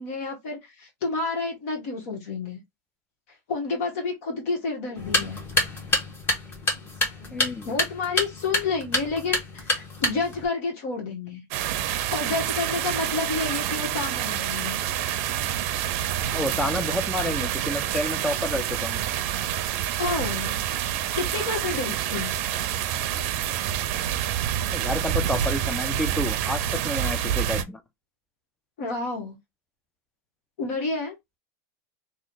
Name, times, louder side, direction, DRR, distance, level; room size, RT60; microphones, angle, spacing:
voice 1, 0.0-2.6 3.5-5.4 7.4-11.4 11.7-15.3 20.0-20.6 21.2-22.3 28.8-29.4 30.6-31.2, left 4 dB, 60° left, 1.5 m, -30 dB
sound 1, 5.0-10.5, left 1 dB, 25° left, 1.4 m, -27 dB
voice 2, 7.3-7.7 16.3-19.0 24.7-27.8, left 1 dB, 5° left, 0.4 m, -30 dB
sound 2, 11.5-27.6, right 11 dB, 55° right, 0.6 m, -27 dB
3.1 x 2.4 x 3.9 m
supercardioid pair, 145°, 9 cm